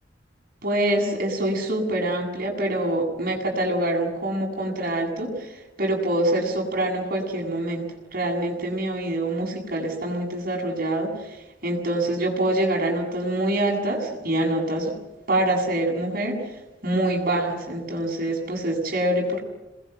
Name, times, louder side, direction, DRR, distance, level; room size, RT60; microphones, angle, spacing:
voice 1, 0.6-7.8 8.1-11.4 11.6-14.9 15.3-16.4 16.8-19.4, right 1 dB, 50° right, 0 dB, 7.9 m, -25 dB
27.0 x 21.5 x 8.2 m, 0.99 s
head